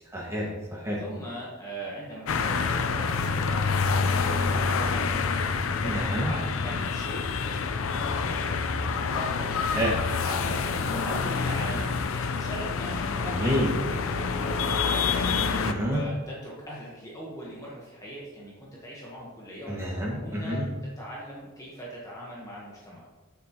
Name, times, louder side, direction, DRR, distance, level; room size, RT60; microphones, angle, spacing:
voice 1, 0.1-1.0 5.8-6.3 9.7-10.0 13.2-13.7 15.6-16.0 19.7-20.7, equal, 15° right, -4 dB, 1.7 m, -28 dB
voice 2, 1.0-5.1 6.2-8.8 9.1-9.5 10.1-15.0 15.9-20.6 21.0-23.0, equal, 15° left, -5 dB, 1.1 m, -40 dB
sound 1, 2.3-15.7, left 5 dB, 85° left, 0.5 m, -27 dB
6.9 x 6.7 x 2.9 m, 1.2 s
head